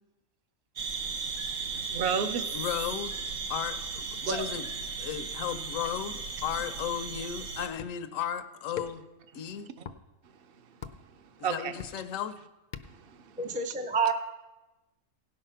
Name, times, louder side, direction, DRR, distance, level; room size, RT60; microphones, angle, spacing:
sound 1, 0.8-7.7, right 4 dB, 85° right, 1.3 m, -36 dB
voice 1, 1.6-2.5 4.3-4.5 11.2-11.8 12.8-13.4, right 6 dB, 50° right, 10 dB, 0.8 m, -33 dB
voice 2, 2.5-3.2 3.5-4.7 5.0-9.0 9.3-9.7 11.5-12.3, left 9 dB, 85° left, 10 dB, 1.1 m, -35 dB
sound 2, 7.8-8.1 8.8-9.2 9.8-10.0 10.8-11.1 11.8-12.2 12.7-13.1, left 8 dB, 55° left, 0.6 m, -40 dB
voice 3, 13.4-14.1, right 5 dB, 10° right, 6 dB, 0.4 m, -28 dB
17.0 x 5.7 x 5.6 m, 1.1 s
omnidirectional pair, 1.3 m